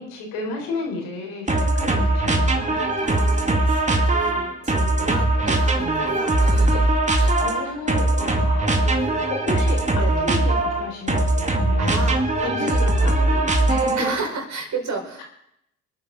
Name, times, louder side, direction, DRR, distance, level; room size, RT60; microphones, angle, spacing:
voice 1, 0.0-2.8 7.4-8.7 9.3-12.1 12.4-14.1, left 3 dB, 75° left, 0 dB, 4.5 m, -32 dB
sound 1, 1.5-14.2, right 2 dB, 20° right, 2.3 m, -20 dB
voice 2, 3.0-7.4 7.6-8.5 8.8-9.3 9.9-10.3 11.8-12.3 12.6-12.8 13.9-15.2, right 3 dB, 50° right, 2 dB, 4.9 m, -33 dB
25.5 x 9.3 x 4.1 m, 0.75 s
hypercardioid pair, 55°, 38 cm